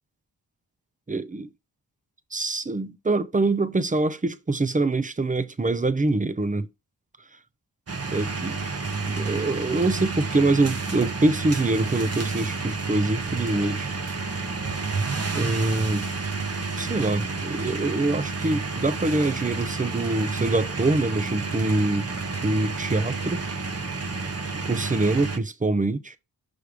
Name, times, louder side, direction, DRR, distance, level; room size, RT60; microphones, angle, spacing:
voice 1, 1.1-1.5 2.3-6.7 8.1-8.6 9.1-13.9 15.3-16.1 16.8-22.1 22.4-23.4 24.6-26.1, right 2 dB, 20° right, 0.6 m, -24 dB
sound 1, 7.9-25.4, right 4 dB, 40° right, 0.9 m, -30 dB
6.3 x 3.4 x 5.0 m
wide cardioid pair, 85°, 39 cm